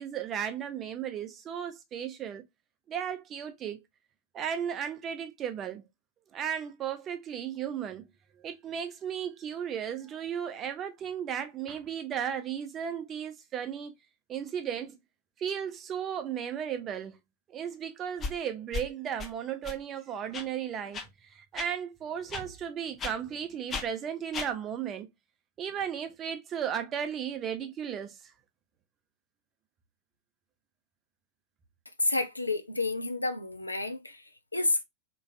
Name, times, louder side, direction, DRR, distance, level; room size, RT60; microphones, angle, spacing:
voice 1, 0.0-2.4 2.9-3.8 4.3-5.8 6.3-8.1 8.4-13.9 14.3-15.0 15.4-17.2 17.5-21.0 21.3-25.1 25.6-28.2, right 8 dB, 30° right, 0.6 m, -35 dB
sound 1, 18.2-18.3 18.7-18.9 19.2-19.3 19.6-19.8 20.3-20.4 20.9-21.0 21.5-21.7 22.3-22.4 23.0-23.1 23.7-23.9 24.3-24.5, left 4 dB, 25° left, 0.5 m, -34 dB
voice 2, 32.0-34.8, left 2 dB, 85° left, 0.4 m, -30 dB
3.0 x 2.5 x 2.3 m
figure-of-eight pair, 90°, 0 cm